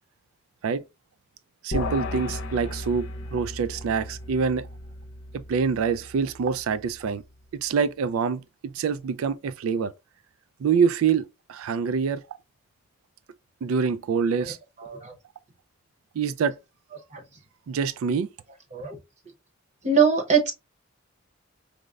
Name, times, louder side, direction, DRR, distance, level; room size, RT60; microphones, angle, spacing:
voice 1, 1.6-3.1 3.3-4.7 5.3-7.2 7.5-9.9 10.6-12.4 13.6-14.6 16.1-16.6 17.7-18.3, right 6 dB, 85° right, 0.3 m, -25 dB
sound 1, 1.7-7.2, left 2 dB, 70° left, 0.7 m, -35 dB
voice 2, 14.8-15.1 17.1-17.2 18.7-19.0 19.8-20.5, right 6 dB, 35° right, 0.7 m, -22 dB
5.1 x 2.0 x 2.3 m
head